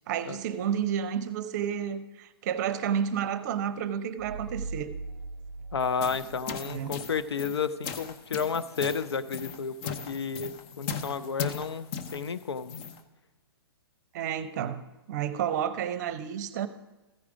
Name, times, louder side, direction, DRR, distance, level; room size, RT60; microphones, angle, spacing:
voice 1, 0.1-4.9 6.5-7.0 14.1-16.7, right 8 dB, 45° right, 0.7 m, -31 dB
sound 1, 4.2-7.5, right 3 dB, 80° right, 0.4 m, -41 dB
voice 2, 5.7-12.7, left 6 dB, 80° left, 0.5 m, -32 dB
sound 2, 5.8-13.0, left 6 dB, 30° left, 0.7 m, -38 dB
14.5 x 4.9 x 4.9 m
hypercardioid pair, 125°, 13 cm